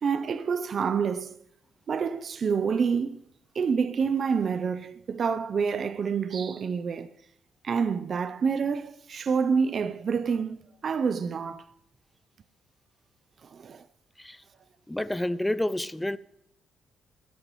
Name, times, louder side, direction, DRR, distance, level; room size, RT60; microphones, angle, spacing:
voice 1, 0.0-1.4 1.9-3.2 3.5-7.1 7.6-11.6 13.4-13.8, right 6 dB, 50° right, 0.5 m, -27 dB
voice 2, 14.9-16.2, left 1 dB, 10° left, 0.4 m, -29 dB
16.5 x 11.0 x 3.0 m
cardioid pair, 90°, 0 cm